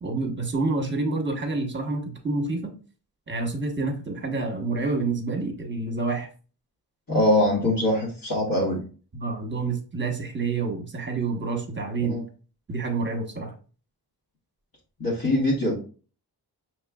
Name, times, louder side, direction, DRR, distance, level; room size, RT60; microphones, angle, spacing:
voice 1, 0.0-2.7 3.3-6.3 9.1-12.2 12.7-13.5, right 3 dB, 25° right, 3 dB, 1.0 m, -28 dB
voice 2, 7.1-8.8 12.1-12.2 15.0-15.7, left 1 dB, 55° left, -6 dB, 1.4 m, -22 dB
5.8 x 3.1 x 2.3 m, 0.38 s
wide cardioid pair, 115°, 42 cm